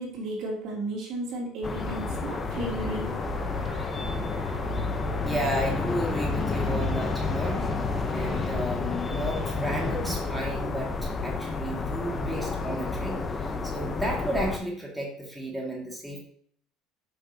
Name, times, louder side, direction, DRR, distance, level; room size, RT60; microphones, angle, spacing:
voice 1, 0.0-3.1, right 1 dB, 55° right, -3 dB, 2.9 m, -34 dB
sound 1, 1.6-14.6, left 3 dB, 30° left, 0.9 m, -30 dB
sound 2, 2.5-10.5, right 7 dB, 80° right, 1.2 m, -45 dB
voice 2, 5.3-7.7 8.0-16.2, equal, 5° right, -2 dB, 2.2 m, -33 dB
7.5 x 6.2 x 2.9 m, 0.63 s
hypercardioid pair, 80°, 0 cm